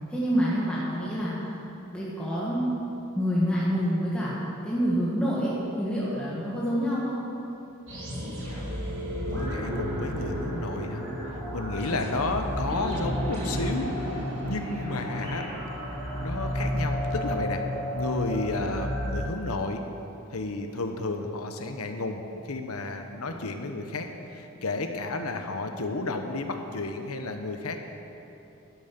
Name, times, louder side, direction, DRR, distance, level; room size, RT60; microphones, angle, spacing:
voice 1, 0.1-1.6 1.9-4.3 4.6-7.2, equal, 5° left, -8 dB, 1.6 m, -27 dB
sound 1, 7.9-19.3, equal, 60° right, 3.3 m, -31 dB
voice 2, 9.2-11.0 11.5-15.5 16.2-17.6 17.9-19.8 20.3-27.8, left 2 dB, 90° left, 5 dB, 1.1 m, -32 dB
11.5 x 10.5 x 6.0 m, 2.9 s
head